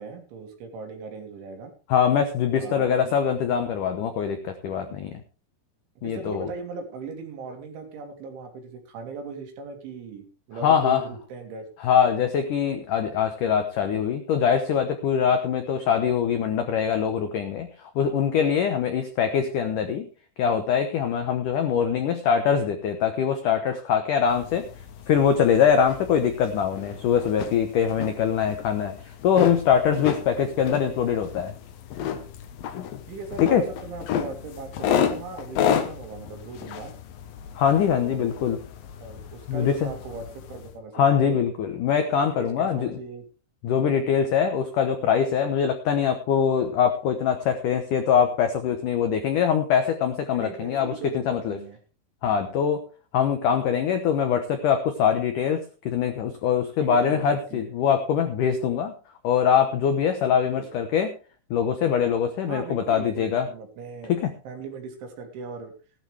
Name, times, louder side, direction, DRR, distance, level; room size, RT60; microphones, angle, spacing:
voice 1, 0.0-1.7 2.6-3.1 4.9-5.2 6.0-11.6 18.1-18.2 29.9-30.6 33.1-36.9 37.9-38.4 39.0-41.4 42.1-43.2 43.7-44.0 50.3-51.8 53.5-53.7 56.8-57.7 60.5-60.7 62.5-64.1 64.4-65.7, right 4 dB, 75° right, 4 dB, 4.9 m, -39 dB
voice 2, 1.9-5.2 6.0-6.5 10.6-11.0 11.8-20.1 20.4-24.6 25.1-28.9 29.2-31.5 33.5-33.6 37.6-38.6 39.5-39.9 40.9-42.9 43.6-50.9 51.3-51.6 52.2-52.8 53.1-58.9 59.2-61.1 61.5-63.5 64.1-64.3, left 7 dB, 85° left, 7 dB, 1.8 m, -23 dB
sound 1, 24.3-40.8, left 8 dB, 65° left, 2.4 m, -32 dB
16.5 x 12.0 x 3.4 m, 0.33 s
omnidirectional pair, 5.4 m